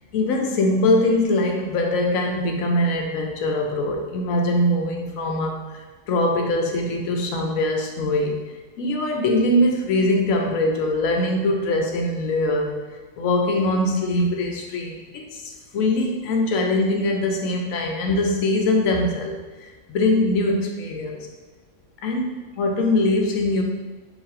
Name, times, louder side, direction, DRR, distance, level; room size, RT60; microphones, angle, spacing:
voice 1, 0.1-8.5 8.8-12.8 13.2-19.4 19.6-21.3 22.0-23.6, left 1 dB, 85° left, 2 dB, 1.1 m, -22 dB
4.9 x 2.7 x 3.7 m, 1.3 s
omnidirectional pair, 1.4 m